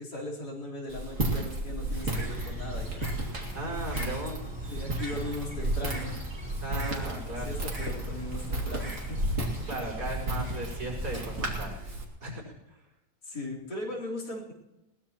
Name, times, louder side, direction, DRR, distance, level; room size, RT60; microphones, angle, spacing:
voice 1, 0.0-3.0 4.7-6.2 6.6-9.4 13.2-14.5, left 1 dB, 70° left, -2 dB, 4.6 m, -38 dB
Walk footsteps, 0.9-12.0, right 1 dB, 50° right, 2.6 m, -33 dB
Bird, 1.9-11.7, equal, 15° right, 3.2 m, -41 dB
voice 2, 3.5-4.4 6.6-7.5 9.7-11.9 12.2-12.8, right 2 dB, 70° right, -3 dB, 5.8 m, -37 dB
21.5 x 18.5 x 3.0 m, 0.93 s
omnidirectional pair, 1.8 m